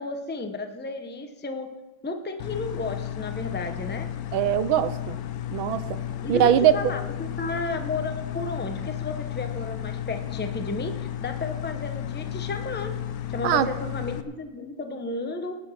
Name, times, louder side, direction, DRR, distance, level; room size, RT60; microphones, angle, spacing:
voice 1, 0.0-1.7 2.0-4.1 6.2-12.9 13.3-15.5, left 3 dB, 15° left, 5 dB, 0.3 m, -33 dB
sound 1, 2.4-14.2, left 11 dB, 65° left, 0.9 m, -33 dB
voice 2, 4.3-5.2 5.5-6.0 6.3-6.7 13.4-13.7, right 11 dB, 85° right, 13 dB, 1.5 m, -21 dB
19.0 x 7.0 x 5.9 m, 1.1 s
omnidirectional pair, 2.2 m